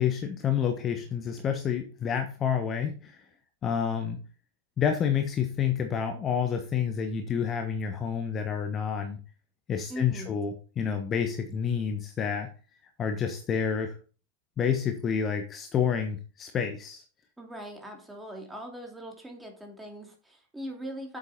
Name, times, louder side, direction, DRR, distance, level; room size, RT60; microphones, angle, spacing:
voice 1, 0.0-3.2 3.6-4.2 4.8-9.2 9.7-12.5 13.0-14.0 14.6-17.0, left 7 dB, 25° left, 6 dB, 1.2 m, -29 dB
voice 2, 9.9-10.4 17.4-21.2, equal, 5° right, 2 dB, 2.7 m, -41 dB
8.1 x 7.9 x 4.3 m, 0.37 s
figure-of-eight pair, 90°, 0 cm